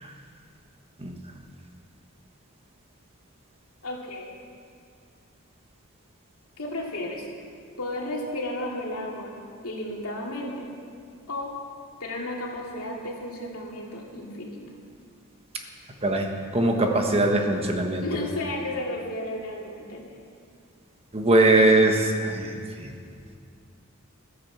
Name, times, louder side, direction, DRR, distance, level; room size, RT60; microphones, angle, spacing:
voice 1, 3.8-4.3 6.6-7.3 7.8-9.3 9.6-10.7 11.3-11.6 12.0-14.6 18.0-20.0, left 1 dB, 75° left, -2 dB, 2.5 m, -33 dB
voice 2, 16.5-18.0 21.1-22.9, right 2 dB, 25° right, 3 dB, 1.2 m, -21 dB
14.0 x 10.5 x 7.2 m, 2.3 s
head